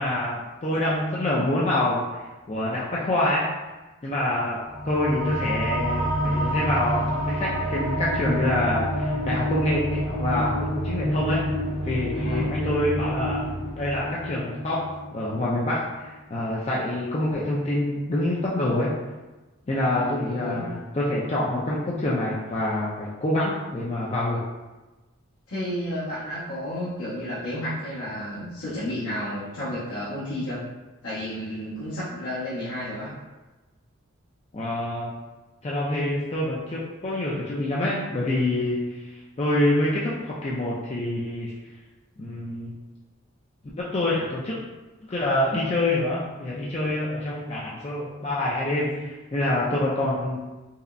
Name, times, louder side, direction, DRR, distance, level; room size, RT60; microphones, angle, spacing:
voice 1, 0.0-2.0 2.5-3.5 4.0-11.4 11.8-13.5 13.8-14.8 15.1-18.9 19.7-24.4 34.5-35.1 35.6-39.1 39.4-41.5 42.2-42.7 43.8-44.6 45.1-50.4, left 1 dB, 30° left, -6 dB, 0.4 m, -26 dB
sound 1, 4.7-15.6, equal, 45° left, 1.1 m, -28 dB
voice 2, 12.1-12.6 19.9-20.6 22.6-22.9 25.5-30.7 31.0-33.1, equal, 85° left, -13 dB, 1.3 m, -32 dB
5.3 x 2.1 x 2.5 m, 1.2 s
head